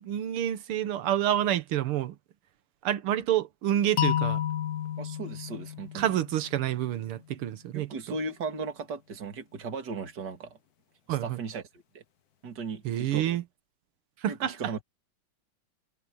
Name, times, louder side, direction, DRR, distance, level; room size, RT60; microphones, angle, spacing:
voice 1, 0.0-2.2 2.8-4.4 6.0-7.9 11.1-11.4 12.9-13.4 14.2-14.5, right 11 dB, 85° right, 1.9 m, -28 dB
sound 1, 4.0-6.9, left 10 dB, 65° left, 1.0 m, -31 dB
voice 2, 5.0-6.2 7.7-10.6 11.1-11.6 11.9-12.0 12.4-13.4 14.3-14.8, right 4 dB, 50° right, 2.8 m, -37 dB
omnidirectional pair, 2.4 m